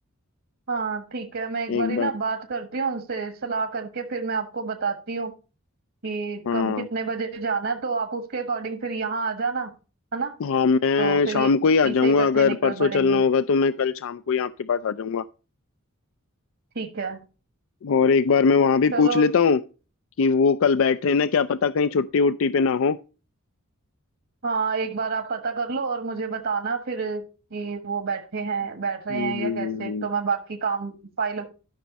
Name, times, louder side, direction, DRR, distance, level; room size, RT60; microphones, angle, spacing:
voice 1, 0.7-5.3 6.0-9.7 10.1-10.3 11.0-11.5 11.8-13.2 16.7-17.2 18.9-19.3 24.4-27.3 27.5-31.5, right 5 dB, 65° right, 1.5 m, -29 dB
voice 2, 1.7-2.1 6.5-6.9 10.4-15.2 17.8-19.6 20.2-23.0 29.1-30.1, left 5 dB, 65° left, 0.4 m, -21 dB
12.5 x 6.2 x 4.1 m
head